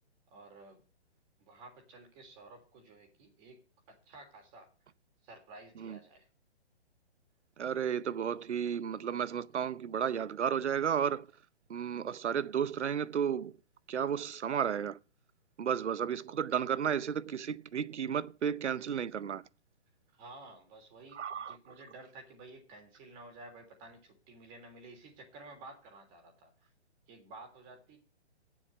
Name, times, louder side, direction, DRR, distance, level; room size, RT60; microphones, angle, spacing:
voice 1, 0.3-0.8 1.4-4.7 5.2-6.3 20.1-26.7 27.1-28.0, right 2 dB, 25° right, 3.3 m, -53 dB
voice 2, 7.6-11.3 11.7-13.5 13.9-15.0 15.6-19.4 21.1-21.6, right 8 dB, 85° right, 0.8 m, -33 dB
8.7 x 7.4 x 7.8 m
hypercardioid pair, 150°, 34 cm